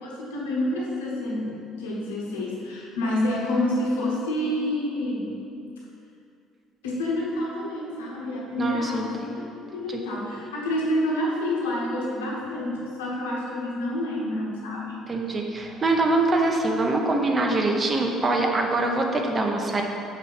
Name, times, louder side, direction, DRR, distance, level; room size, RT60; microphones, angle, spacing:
voice 1, 0.0-5.4 6.8-15.1, left 1 dB, 80° left, -5 dB, 1.1 m, -28 dB
voice 2, 8.6-9.0 9.9-10.0 15.1-19.8, right 2 dB, 35° right, 2 dB, 1.1 m, -24 dB
6.3 x 5.2 x 5.7 m, 2.6 s
hypercardioid pair, 55°, 0 cm